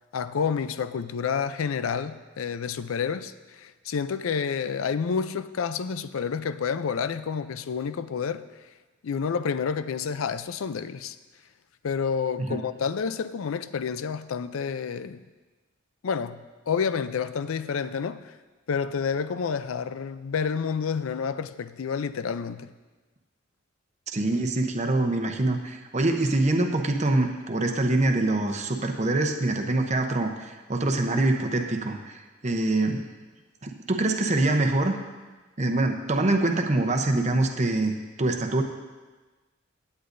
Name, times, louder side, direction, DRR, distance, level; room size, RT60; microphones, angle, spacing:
voice 1, 0.1-8.5 9.0-11.2 11.8-15.2 16.0-18.4 18.7-22.7, left 6 dB, 85° left, 0.4 m, -29 dB
voice 2, 24.1-33.1 33.6-34.9 35.6-38.6, right 2 dB, 35° right, 0.8 m, -25 dB
16.5 x 9.4 x 2.6 m
head